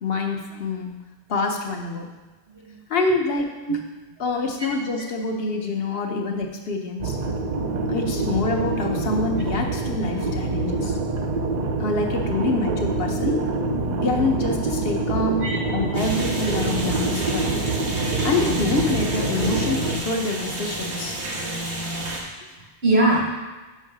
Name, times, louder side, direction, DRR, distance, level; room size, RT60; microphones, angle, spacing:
voice 1, 0.0-0.9 1.3-2.1 2.9-3.5 4.2-7.2 7.9-11.0 11.8-13.4 13.9-15.5 15.7-17.6 18.2-21.2, left 3 dB, 65° left, 2 dB, 1.1 m, -26 dB
sound 1, 7.0-20.0, right 3 dB, 50° right, 0.6 m, -26 dB
sound 2, 15.9-22.2, right 1 dB, 90° right, 1.7 m, -30 dB
voice 2, 22.5-23.4, right 1 dB, 70° right, -3 dB, 2.0 m, -22 dB
6.2 x 5.5 x 4.9 m, 1.2 s
omnidirectional pair, 1.1 m